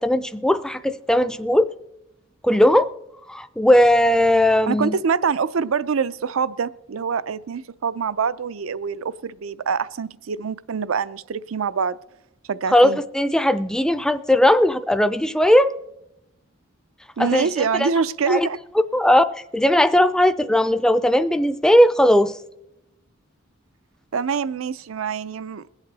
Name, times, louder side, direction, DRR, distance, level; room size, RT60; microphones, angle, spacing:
voice 1, 0.0-1.7 2.4-2.9 3.3-5.0 12.7-15.7 17.2-17.5 17.8-17.9 18.3-18.5 18.8-19.2 19.5-22.3, left 1 dB, 5° left, 0.4 m, -18 dB
voice 2, 4.7-12.0 12.5-13.0 17.2-18.6 24.1-25.7, right 6 dB, 80° right, 0.5 m, -25 dB
21.5 x 8.2 x 4.1 m
head